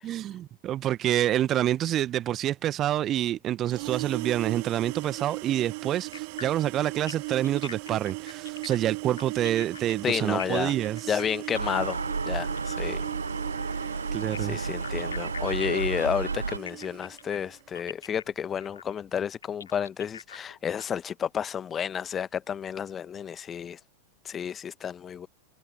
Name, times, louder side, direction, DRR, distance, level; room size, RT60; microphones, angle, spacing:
voice 1, 0.0-11.2 14.1-14.6, right 12 dB, 30° right, 1.2 m, -27 dB
sound 1, 3.6-17.6, right 27 dB, 45° right, 2.3 m, -38 dB
sound 2, 6.1-12.9 14.1-20.8, left 7 dB, 70° left, 2.8 m, -43 dB
voice 2, 10.0-10.7 11.1-13.0 14.4-23.8 24.2-25.3, left 8 dB, 25° left, 1.2 m, -31 dB
Gull seagull, 11.5-16.6, right 4 dB, 80° right, 0.4 m, -31 dB
figure-of-eight pair, 90°, 0 cm